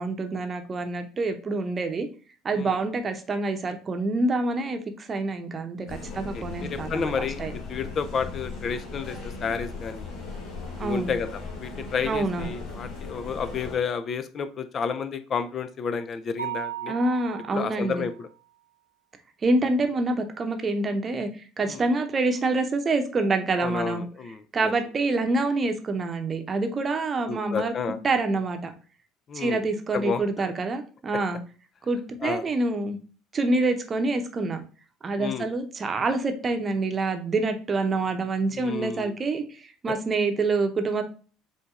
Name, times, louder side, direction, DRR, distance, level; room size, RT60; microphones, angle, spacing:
voice 1, 0.0-2.1 2.4-7.1 7.4-7.5 10.8-11.1 12.0-12.5 16.9-18.0 19.4-21.3 21.6-24.0 24.5-27.7 28.0-28.7 29.3-31.4 31.9-33.0 33.3-34.6 35.0-41.0, right 3 dB, 30° right, 6 dB, 0.8 m, -26 dB
sound 1, 5.9-13.7, left 4 dB, 55° left, 1.5 m, -38 dB
voice 2, 6.1-10.1 10.8-16.9 17.5-18.3 21.6-21.8 23.6-24.7 27.3-28.0 29.3-29.6 29.9-30.5 32.2-32.4 35.2-35.5 38.5-39.1, left 6 dB, 35° left, 11 dB, 0.4 m, -31 dB
Mallet percussion, 16.4-18.2, right 12 dB, 90° right, 0.5 m, -36 dB
7.7 x 2.8 x 2.4 m, 0.38 s
figure-of-eight pair, 60°, 0 cm